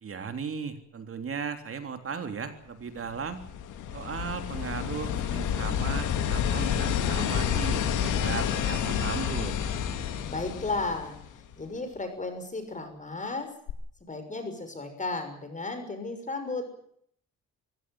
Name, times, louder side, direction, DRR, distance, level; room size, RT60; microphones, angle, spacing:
voice 1, 0.0-3.4 3.9-9.6, right 6 dB, 45° right, 7 dB, 3.4 m, -36 dB
sound 1, 3.1-11.5 13.7-13.8, left 8 dB, 85° left, 2.6 m, -29 dB
voice 2, 10.3-13.5 14.0-16.8, left 3 dB, 25° left, 7 dB, 6.2 m, -34 dB
23.5 x 16.0 x 9.4 m, 0.66 s
cardioid pair, 90°, 30 cm